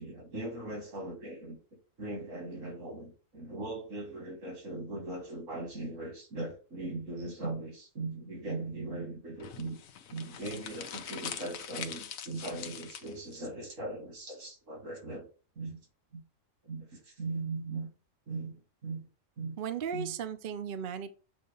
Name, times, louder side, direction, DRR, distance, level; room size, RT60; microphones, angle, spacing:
voice 1, 0.0-1.6 2.0-9.8 10.1-15.3 15.6-15.8 16.1-16.2 16.6-17.9 18.3-19.1 19.4-19.6 19.9-20.1, right 2 dB, 70° right, 2.2 m, -39 dB
sound 1, 9.4-13.4, left 8 dB, 80° left, 1.1 m, -43 dB
voice 2, 19.6-21.1, right 7 dB, 55° right, 0.6 m, -36 dB
7.7 x 2.8 x 5.1 m
omnidirectional pair, 1.4 m